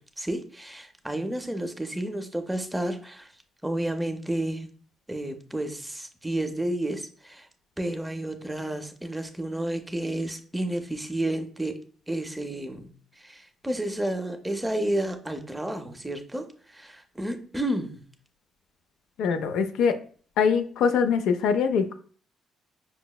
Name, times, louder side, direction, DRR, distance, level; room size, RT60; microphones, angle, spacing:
voice 1, 0.0-3.3 3.6-4.7 5.1-7.5 7.8-11.8 12.1-18.0, right 1 dB, 5° right, 6 dB, 0.4 m, -31 dB
voice 2, 19.2-20.0 20.4-21.9, left 6 dB, 90° left, 8 dB, 0.3 m, -23 dB
5.4 x 2.0 x 2.2 m, 0.43 s
cardioid pair, 115°, 0 cm